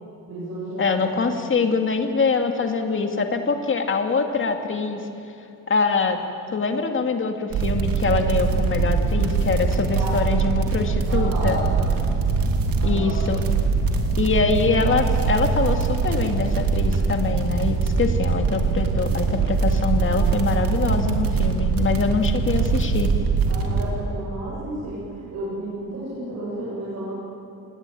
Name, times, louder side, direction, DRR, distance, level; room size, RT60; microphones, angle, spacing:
voice 1, 0.3-1.0 1.3-1.4 9.9-10.1 11.1-11.9 12.8-13.2 23.5-27.1, right 1 dB, 50° right, -7 dB, 7.2 m, -32 dB
voice 2, 0.8-5.0 5.7-6.2 6.5-11.6 12.8-13.4 14.2-23.1, left 4 dB, 35° left, 5 dB, 2.2 m, -24 dB
sound 1, 7.5-23.8, right 5 dB, 85° right, 3.1 m, -22 dB
27.5 x 20.5 x 9.3 m, 2.8 s
wide cardioid pair, 160°, 33 cm